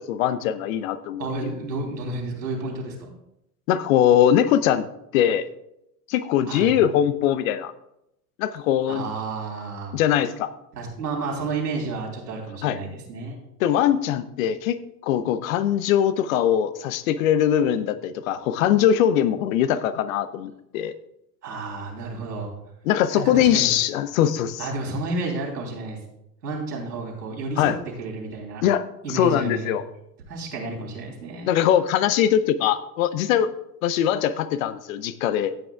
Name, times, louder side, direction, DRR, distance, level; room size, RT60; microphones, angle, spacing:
voice 1, 0.0-1.5 3.7-4.8 5.1-5.5 6.1-7.7 8.4-9.1 9.9-10.5 12.6-12.8 13.6-14.8 15.0-20.9 22.9-24.7 27.6-27.8 28.6-29.8 31.5-33.5 33.8-35.5, left 10 dB, 55° left, 13 dB, 0.8 m, -21 dB
voice 2, 1.2-3.1 6.5-6.8 8.9-10.0 10.7-13.4 21.4-22.5 23.1-23.7 24.6-26.0 26.4-27.7 28.0-28.6 29.0-29.7 30.3-31.6, right 3 dB, 75° right, -1 dB, 3.6 m, -31 dB
15.0 x 8.5 x 2.4 m, 0.83 s
hypercardioid pair, 90°, 49 cm